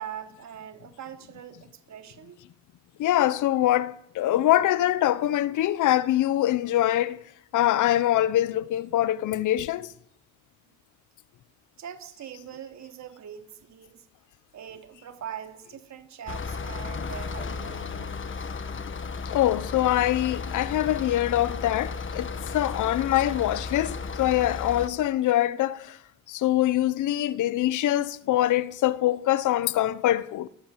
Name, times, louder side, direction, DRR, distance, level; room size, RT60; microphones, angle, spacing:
voice 1, 0.0-2.4 11.8-14.1 14.5-18.6, right 9 dB, 65° right, 3.0 m, -42 dB
voice 2, 3.0-7.2 7.5-9.9 19.2-26.0 26.3-30.5, left 13 dB, 80° left, 1.0 m, -24 dB
sound 1, 16.3-24.9, left 4 dB, 40° left, 1.7 m, -34 dB
29.0 x 14.5 x 8.1 m
cardioid pair, 90°, 30 cm